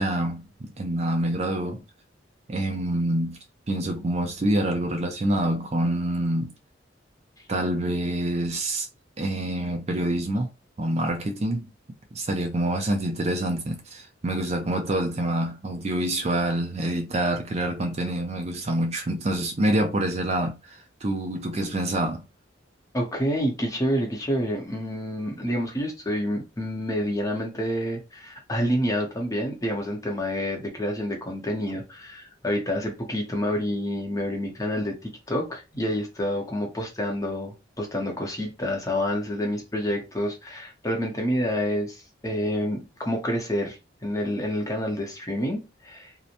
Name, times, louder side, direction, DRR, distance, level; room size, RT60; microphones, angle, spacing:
voice 1, 0.0-1.8 2.5-3.4 3.7-6.5 7.5-8.9 9.2-10.5 10.8-11.7 12.1-22.2, right 1 dB, 35° right, 0.5 m, -26 dB
voice 2, 22.9-46.1, equal, 20° left, 0.7 m, -28 dB
2.8 x 2.1 x 2.5 m
head